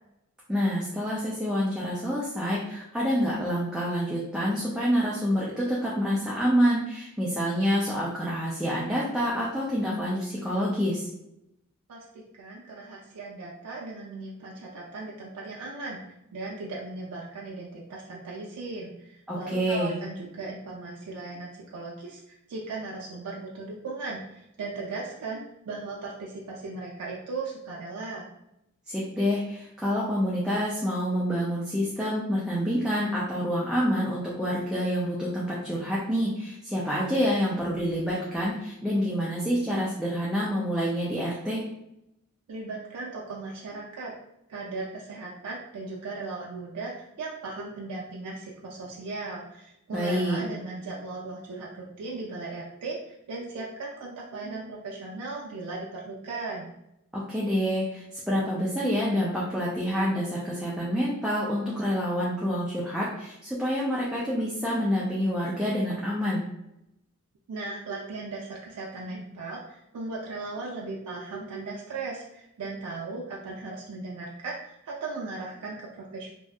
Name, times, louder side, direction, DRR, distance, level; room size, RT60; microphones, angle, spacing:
voice 1, 0.5-11.1 19.3-20.0 28.9-41.6 49.9-50.4 57.1-66.4, equal, 5° right, -7 dB, 0.3 m, -27 dB
voice 2, 11.9-16.0 16.3-28.3 42.5-44.1 44.5-56.7 67.5-76.3, right 3 dB, 90° right, -4 dB, 0.4 m, -37 dB
2.6 x 2.4 x 2.2 m, 0.83 s
head